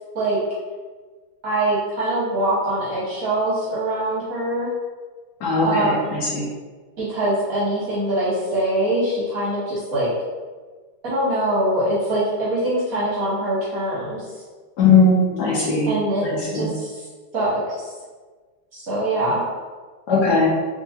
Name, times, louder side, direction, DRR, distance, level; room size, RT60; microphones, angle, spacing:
voice 1, 1.4-4.7 5.6-6.2 7.0-10.1 11.0-14.2 15.9-16.3 16.5-16.9 17.3-17.9 18.7-19.4, right 1 dB, 60° right, -8 dB, 1.0 m, -23 dB
voice 2, 5.4-6.4 14.8-15.9 16.5-16.7 20.1-20.5, left 3 dB, 65° left, -6 dB, 1.2 m, -18 dB
3.6 x 2.9 x 2.7 m, 1.4 s
omnidirectional pair, 2.2 m